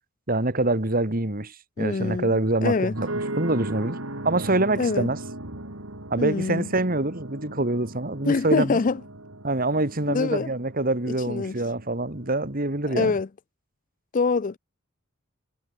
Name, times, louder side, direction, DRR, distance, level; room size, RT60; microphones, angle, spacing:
voice 1, 0.3-4.0 4.2-5.2 6.1-8.8 9.4-13.1, right 2 dB, 45° right, 2.3 m, -25 dB
voice 2, 1.8-2.9 4.8-5.1 6.2-6.7 8.2-9.0 10.1-10.5 11.1-11.5 12.9-13.3 14.1-14.6, left 4 dB, 40° left, 0.4 m, -25 dB
sound 1, 2.9-13.0, right 1 dB, 80° right, 4.5 m, -38 dB
head